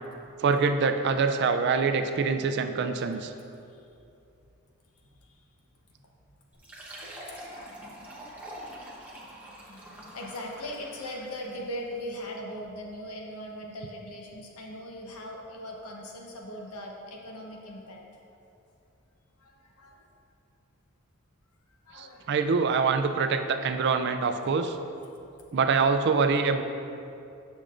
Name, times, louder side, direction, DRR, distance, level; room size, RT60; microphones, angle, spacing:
voice 1, 0.4-3.3 21.9-24.8 25.5-26.6, right 5 dB, 50° right, 8 dB, 0.3 m, -25 dB
voice 2, 5.0-5.5 7.0-7.8 9.6-18.1 19.4-20.0 21.8-22.4, equal, 85° left, 0 dB, 0.9 m, -40 dB
Fill (with liquid), 6.5-11.7, right 1 dB, 5° right, 0.8 m, -45 dB
8.4 x 6.1 x 2.5 m, 2.6 s
head